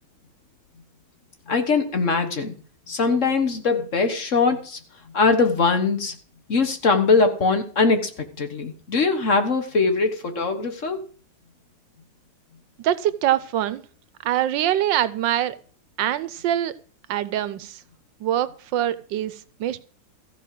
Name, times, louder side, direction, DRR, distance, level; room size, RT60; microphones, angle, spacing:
voice 1, 1.5-2.5 2.9-4.8 5.0-6.2 6.5-11.1, left 4 dB, 45° left, 7 dB, 1.5 m, -21 dB
voice 2, 12.8-13.8 14.2-15.6 16.0-16.7 17.1-17.8 18.2-19.8, right 12 dB, 80° right, 16 dB, 1.4 m, -24 dB
14.5 x 5.3 x 7.5 m, 0.41 s
omnidirectional pair, 2.0 m